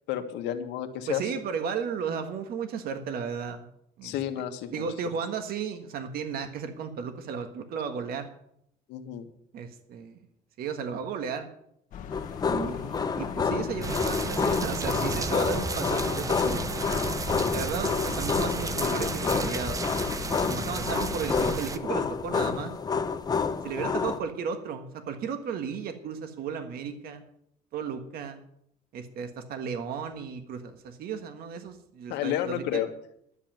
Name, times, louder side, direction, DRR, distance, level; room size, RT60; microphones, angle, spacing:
voice 1, 0.1-1.3 4.0-4.8 8.9-9.3 32.1-32.9, left 11 dB, 80° left, 6 dB, 1.7 m, -31 dB
voice 2, 1.1-3.6 4.0-4.1 4.7-8.3 9.5-10.2 10.6-11.5 12.5-17.0 17.5-19.8 20.3-22.7 23.6-27.2 27.7-28.4 28.9-32.8, right 6 dB, 60° right, 7 dB, 1.6 m, -34 dB
sound 1, 11.9-21.4, left 7 dB, 50° left, 1.4 m, -40 dB
sound 2, 12.1-24.2, left 5 dB, 20° left, 0.9 m, -29 dB
sound 3, 13.8-21.8, right 4 dB, 20° right, 0.7 m, -33 dB
12.0 x 7.6 x 9.1 m, 0.71 s
cardioid pair, 145°, 18 cm